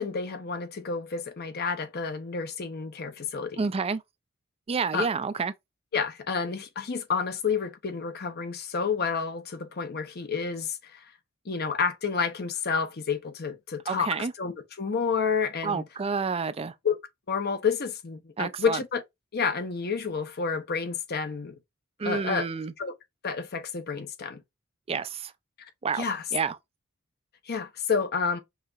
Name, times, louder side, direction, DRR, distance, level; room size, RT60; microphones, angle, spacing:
voice 1, 0.0-3.7 4.9-5.1 5.9-10.8 11.5-15.8 16.8-17.0 17.3-19.0 19.3-21.6 22.0-22.5 22.8-22.9 23.2-24.4 26.0-26.2 27.5-28.4, left 5 dB, 50° left, 0.7 m, -29 dB
voice 2, 3.6-4.0 4.7-5.5 13.9-14.3 15.6-16.7 18.4-18.8 22.0-22.7 24.9-25.3 25.8-26.1 26.3-26.6, right 5 dB, 30° right, 0.4 m, -29 dB
5.6 x 2.9 x 2.5 m
head